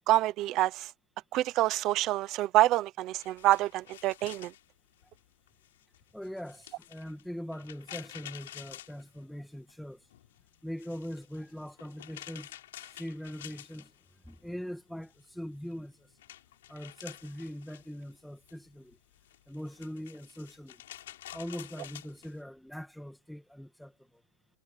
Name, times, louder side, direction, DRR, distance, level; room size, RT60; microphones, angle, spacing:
voice 1, 0.1-0.9 1.3-4.5, right 15 dB, 25° right, 0.8 m, -26 dB
sound 1, 3.2-9.7 10.0-14.4 14.7-22.4, left 13 dB, 60° left, 5.4 m, -50 dB
voice 2, 6.1-10.0 10.6-12.5 12.8-13.9 14.2-16.1 16.7-19.0 19.5-20.8 21.3-24.2, equal, ahead, 1.7 m, -42 dB
supercardioid pair, 180°, 0 cm